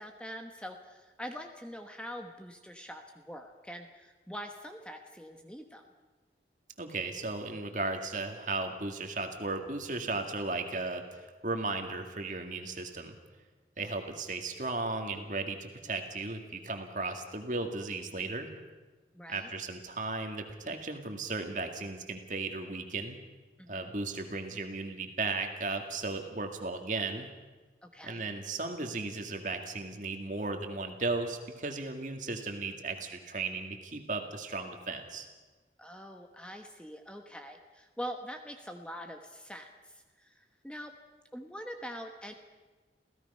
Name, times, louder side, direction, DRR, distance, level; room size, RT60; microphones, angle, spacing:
voice 1, 0.0-5.8 19.1-19.5 23.6-23.9 27.8-28.2 35.8-40.9 41.3-42.3, equal, 5° left, 5 dB, 1.1 m, -44 dB
voice 2, 6.8-13.2 13.8-18.5 19.3-23.2 23.7-27.3 28.0-35.3, right 3 dB, 45° right, 5 dB, 2.1 m, -35 dB
28.0 x 16.5 x 5.6 m, 1.3 s
head